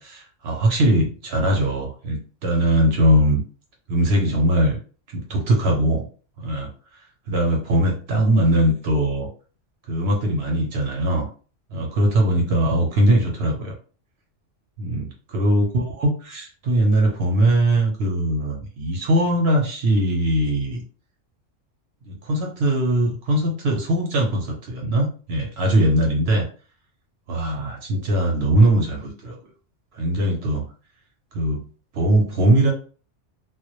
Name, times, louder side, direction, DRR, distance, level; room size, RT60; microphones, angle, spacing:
voice 1, 0.0-3.4 3.9-4.8 5.1-6.0 6.4-6.7 7.3-9.3 9.9-11.3 11.7-13.7 14.8-20.8 22.0-26.5 27.3-29.4 29.9-30.6 31.3-31.6 31.9-32.7, right 1 dB, 65° right, 1 dB, 0.8 m, -20 dB
2.1 x 2.0 x 2.8 m, 0.38 s
omnidirectional pair, 1.3 m